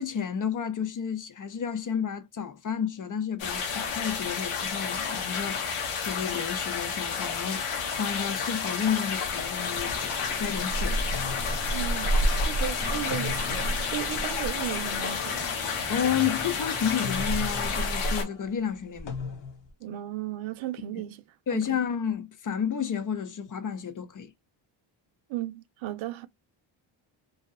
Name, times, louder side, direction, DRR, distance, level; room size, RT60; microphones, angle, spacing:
voice 1, 0.0-10.1 10.4-11.1 15.9-19.1 20.9-21.0 21.5-24.3, left 8 dB, 40° left, 0.6 m, -31 dB
sound 1, 3.4-18.2, left 3 dB, 80° left, 1.0 m, -29 dB
sound 2, 9.2-19.7, left 5 dB, 60° left, 0.9 m, -41 dB
sound 3, 9.6-17.9, equal, 5° right, 0.8 m, -43 dB
voice 2, 11.7-15.6 19.8-21.2 21.5-21.8 25.3-26.3, right 13 dB, 70° right, 0.5 m, -35 dB
2.8 x 2.3 x 2.2 m
cardioid pair, 100°, 50 cm